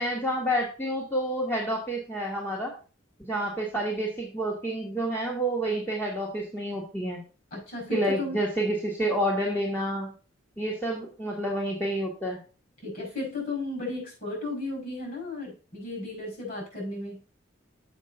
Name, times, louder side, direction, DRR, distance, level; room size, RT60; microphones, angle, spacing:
voice 1, 0.0-2.7 3.2-7.2 7.9-10.1 10.6-12.4, right 1 dB, 10° left, -3 dB, 1.4 m, -29 dB
voice 2, 7.5-8.4 12.8-17.2, left 2 dB, 50° left, 1 dB, 5.2 m, -34 dB
7.3 x 5.3 x 5.3 m, 0.36 s
head